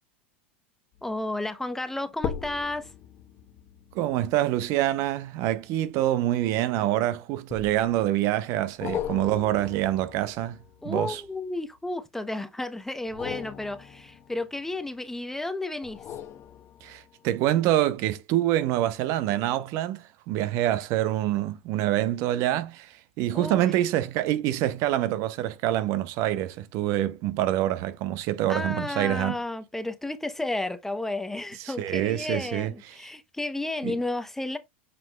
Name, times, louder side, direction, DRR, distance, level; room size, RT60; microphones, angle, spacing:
sound 1, 0.9-1.3 2.1-6.8 7.5-8.1 8.8-11.8 13.0-15.1 15.8-17.2 17.7-17.8, left 9 dB, 40° left, 1.1 m, -40 dB
voice 1, 1.0-2.9 10.8-16.0 23.3-23.8 28.5-34.6, left 2 dB, 5° left, 0.8 m, -32 dB
voice 2, 3.9-10.6 10.8-11.2 16.8-29.4 31.6-33.0 33.8-34.0, right 13 dB, 50° right, 0.8 m, -26 dB
7.8 x 6.0 x 2.3 m
hypercardioid pair, 110°, 6 cm